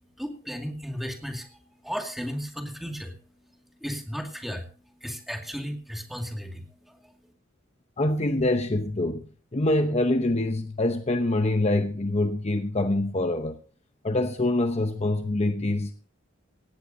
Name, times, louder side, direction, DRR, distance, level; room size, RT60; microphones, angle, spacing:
voice 1, 0.2-1.5 1.8-3.1 3.8-4.7 5.0-7.1, equal, ahead, 2.2 m, -34 dB
voice 2, 8.0-9.3 9.5-13.6 14.0-16.1, left 2 dB, 30° left, 0.9 m, -25 dB
17.5 x 16.5 x 2.7 m
head